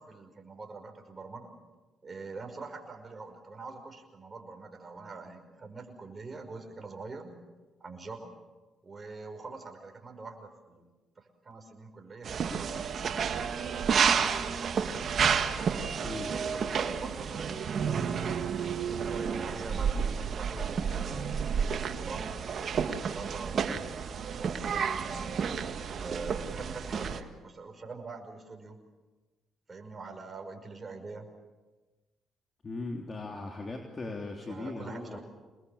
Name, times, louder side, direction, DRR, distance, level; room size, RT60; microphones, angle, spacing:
voice 1, 0.0-1.5 2.0-7.4 7.8-8.3 8.8-10.9 11.2-13.5 14.0-15.4 15.9-18.2 18.8-21.6 22.0-23.8 24.4-25.3 26.0-28.8 29.7-31.3 34.5-35.2, right 3 dB, 35° right, 4 dB, 5.7 m, -44 dB
sound 1, 12.2-27.2, right 6 dB, 60° right, 1.8 m, -31 dB
voice 2, 16.0-16.3 32.6-35.2, left 2 dB, 35° left, 2 dB, 3.4 m, -38 dB
28.0 x 21.0 x 7.2 m, 1.2 s
supercardioid pair, 65°, 0 cm